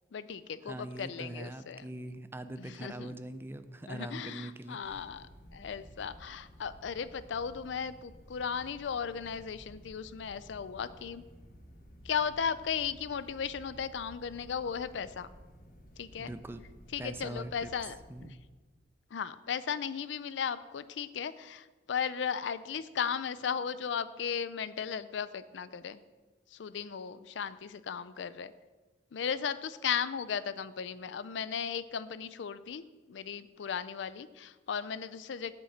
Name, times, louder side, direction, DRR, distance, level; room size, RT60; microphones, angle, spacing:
voice 1, 0.1-1.9 2.6-3.1 3.9-11.2 12.0-15.3 16.0-16.3 16.9-18.4 19.1-26.0 26.5-28.5 29.1-35.5, left 7 dB, 75° left, 15 dB, 0.4 m, -36 dB
voice 2, 0.6-5.1 16.2-16.6 17.0-18.4, right 1 dB, 10° right, 11 dB, 0.4 m, -42 dB
sound 1, 4.8-18.3, equal, 55° left, 1.3 m, -54 dB
8.1 x 5.3 x 7.2 m, 1.3 s
head